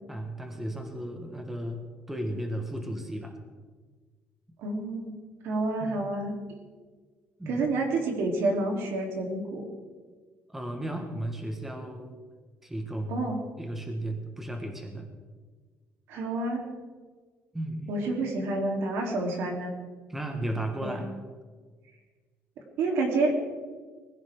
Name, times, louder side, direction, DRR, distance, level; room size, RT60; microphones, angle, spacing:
voice 1, 0.1-3.4 5.8-6.0 7.4-7.7 10.5-12.1 12.6-13.3 13.6-15.1 17.5-17.9 20.1-21.1, right 1 dB, 5° right, 4 dB, 1.5 m, -35 dB
voice 2, 4.6-5.1 5.4-6.3 7.5-9.7 13.1-13.4 16.1-16.7 17.9-19.7 20.8-21.0 22.8-23.3, right 2 dB, 80° right, 1 dB, 3.4 m, -28 dB
20.5 x 15.5 x 3.8 m, 1.5 s
cardioid pair, 160°, 4 cm